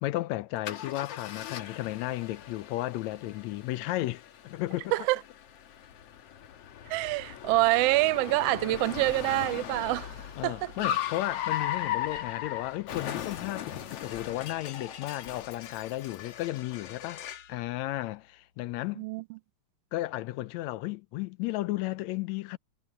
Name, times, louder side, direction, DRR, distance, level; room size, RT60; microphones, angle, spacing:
voice 1, 0.0-4.9 10.4-17.2 17.5-19.0 19.9-22.6, left 16 dB, 80° left, 1.9 m, -34 dB
Car, 0.7-17.5, left 11 dB, 60° left, 2.2 m, -38 dB
voice 2, 6.9-10.2 10.4-10.7 19.0-19.4, right 19 dB, 75° right, 1.5 m, -26 dB
omnidirectional pair, 3.3 m